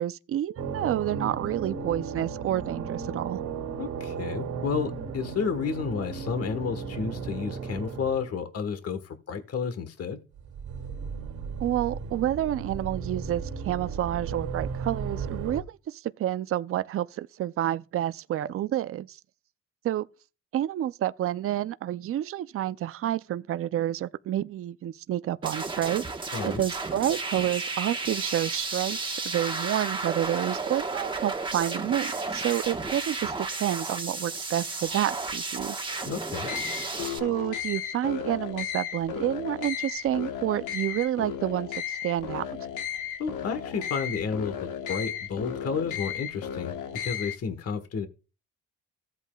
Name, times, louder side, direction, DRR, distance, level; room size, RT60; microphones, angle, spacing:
voice 1, 0.0-3.4 11.6-19.2 19.8-20.1 20.5-26.0 26.4-35.8 37.2-42.4, right 12 dB, 50° right, 0.5 m, -29 dB
sound 1, 0.6-8.3 10.3-15.6, right 5 dB, 80° right, 2.2 m, -35 dB
voice 2, 3.8-10.2 26.3-26.6 36.0-36.5 43.2-48.1, left 6 dB, 55° left, 1.3 m, -31 dB
sound 2, 25.4-37.2, right 3 dB, 15° right, 1.2 m, -33 dB
sound 3, 36.4-47.4, left 8 dB, 85° left, 1.2 m, -34 dB
14.5 x 8.2 x 2.3 m
cardioid pair, 90°, 30 cm